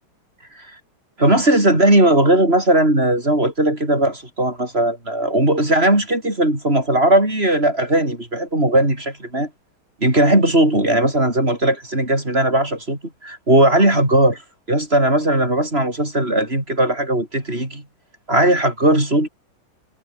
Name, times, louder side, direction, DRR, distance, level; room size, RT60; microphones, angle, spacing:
voice 1, 1.2-9.5 10.0-14.4 14.7-17.8 18.3-19.3, right 1 dB, 30° right, 7.3 m, -17 dB
omnidirectional pair, 2.2 m